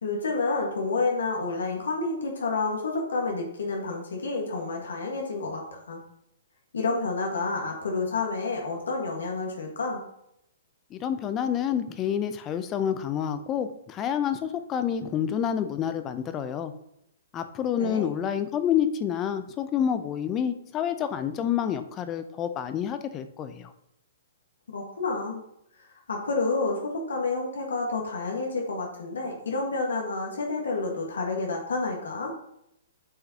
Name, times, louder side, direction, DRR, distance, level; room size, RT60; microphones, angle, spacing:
voice 1, 0.0-6.0 6.7-10.0 17.8-18.1 24.7-25.4 26.1-32.3, left 3 dB, 80° left, 0 dB, 1.5 m, -29 dB
voice 2, 10.9-16.7 17.3-23.7, left 9 dB, 25° left, 10 dB, 0.5 m, -28 dB
8.4 x 5.8 x 2.9 m, 0.78 s
hypercardioid pair, 130°, 0 cm